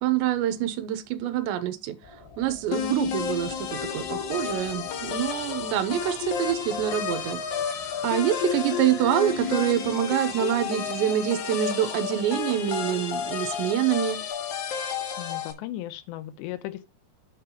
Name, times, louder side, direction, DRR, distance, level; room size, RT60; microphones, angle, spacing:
voice 1, 0.0-2.0 2.4-7.4 8.0-14.2, right 11 dB, 85° right, 3.2 m, -26 dB
sound 1, 2.0-14.3, left 2 dB, 40° left, 4.9 m, -47 dB
sound 2, 2.7-15.5, left 8 dB, 55° left, 2.5 m, -31 dB
voice 2, 15.2-16.9, left 14 dB, 85° left, 3.0 m, -36 dB
8.9 x 8.6 x 2.9 m
omnidirectional pair, 5.0 m